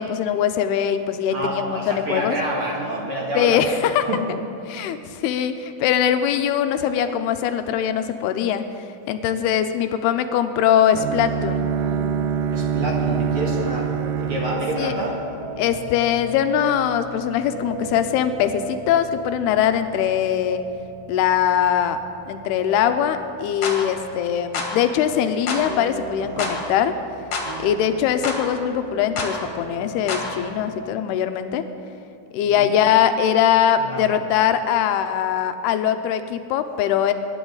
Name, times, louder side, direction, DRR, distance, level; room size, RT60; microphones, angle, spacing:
voice 1, 0.0-2.4 3.4-4.0 4.7-8.6 9.1-11.7 14.8-14.9 15.6-20.6 21.1-22.0 22.3-26.9 27.6-31.6 32.3-37.1, left 9 dB, 80° left, 8 dB, 2.6 m, -21 dB
voice 2, 1.3-3.8 4.1-4.2 12.5-15.2 26.3-26.5 32.4-32.7 33.8-34.0, right 1 dB, 50° right, -3 dB, 1.9 m, -28 dB
Bowed string instrument, 10.9-15.9, right 7 dB, 85° right, 1.9 m, -25 dB
sound 1, 11.7-30.8, right 2 dB, 70° right, 3.3 m, -38 dB
sound 2, 23.6-23.8 24.5-24.7 25.5-25.7 26.4-26.6 27.3-27.5 28.2-28.4 29.2-29.3 30.1-30.3, left 4 dB, 50° left, 2.4 m, -26 dB
24.0 x 11.0 x 4.0 m, 2.6 s
omnidirectional pair, 4.7 m